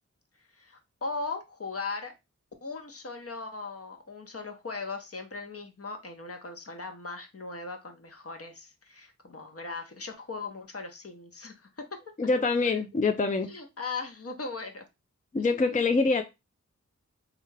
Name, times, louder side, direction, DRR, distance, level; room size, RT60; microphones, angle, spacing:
voice 1, 0.5-2.1 2.6-11.9 12.6-13.2 13.5-14.8 15.5-15.8, left 3 dB, 50° left, 4 dB, 0.8 m, -39 dB
voice 2, 12.2-13.5 15.3-16.2, left 3 dB, 25° left, 6 dB, 0.4 m, -25 dB
3.3 x 2.4 x 3.2 m, 0.24 s
cardioid pair, 40°, 29 cm